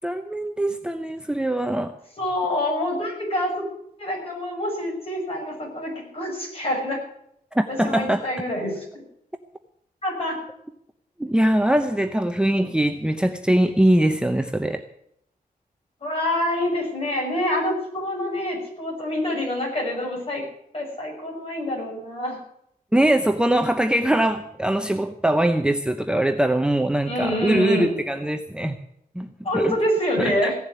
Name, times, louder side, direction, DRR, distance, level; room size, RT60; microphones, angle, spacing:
voice 1, 0.0-1.9 7.5-8.3 11.2-14.8 22.9-28.8 29.1-29.3 29.5-29.8 30.2-30.5, right 1 dB, 5° right, 5 dB, 0.8 m, -22 dB
voice 2, 2.2-3.5 4.0-7.0 7.7-9.0 10.0-10.4 16.0-20.4 20.7-22.4 27.0-27.9 29.4-30.6, left 1 dB, 40° left, -1 dB, 6.6 m, -26 dB
16.5 x 7.2 x 9.7 m, 0.75 s
wide cardioid pair, 120°, 15 cm